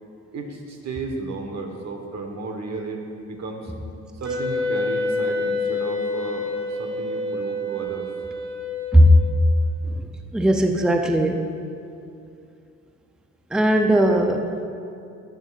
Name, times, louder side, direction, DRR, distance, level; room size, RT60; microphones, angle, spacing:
voice 1, 0.3-3.7 4.2-6.5 6.8-8.1, right 3 dB, 65° right, 3 dB, 1.2 m, -33 dB
Wind instrument woodwind instrument, 4.2-9.4, left 2 dB, 85° right, 2.0 m, -27 dB
voice 2, 10.3-11.5 13.5-14.5, equal, 5° right, 4 dB, 0.5 m, -17 dB
13.0 x 9.1 x 2.4 m, 2.6 s
cardioid pair, 90°, 30 cm